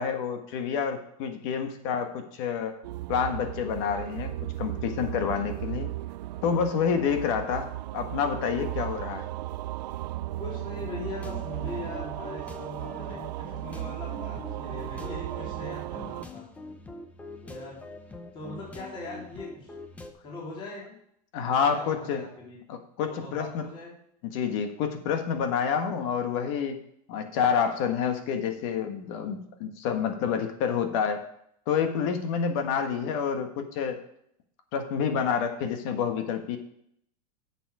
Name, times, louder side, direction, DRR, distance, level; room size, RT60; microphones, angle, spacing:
voice 1, 0.0-2.8 3.1-4.3 4.6-5.9 6.4-9.3 21.3-22.2 22.7-23.7 24.3-26.8 27.1-31.2 31.7-34.0 34.7-36.6, left 7 dB, 50° left, 7 dB, 1.4 m, -28 dB
sound 1, 2.8-16.3, right 15 dB, 85° right, 0.4 m, -36 dB
voice 2, 5.4-5.8 7.4-7.6 10.4-16.5 17.4-17.8 18.3-19.7 20.2-20.9 21.7-22.6 23.1-23.9, left 2 dB, 25° left, -4 dB, 3.6 m, -41 dB
sound 2, 11.2-20.1, left 3 dB, 5° left, 0.7 m, -44 dB
10.0 x 7.2 x 4.8 m, 0.71 s
supercardioid pair, 155°, 21 cm